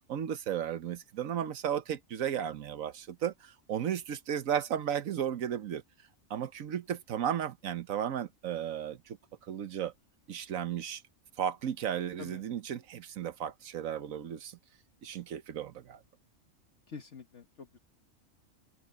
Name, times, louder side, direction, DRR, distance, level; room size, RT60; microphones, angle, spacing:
voice 1, 0.1-5.8 6.3-9.2 9.5-9.9 10.3-11.0 11.4-14.6 15.0-16.0, right 9 dB, 85° right, 1.3 m, -34 dB
voice 2, 16.9-17.8, left 5 dB, 60° left, 1.6 m, -46 dB
open air
omnidirectional pair, 1.4 m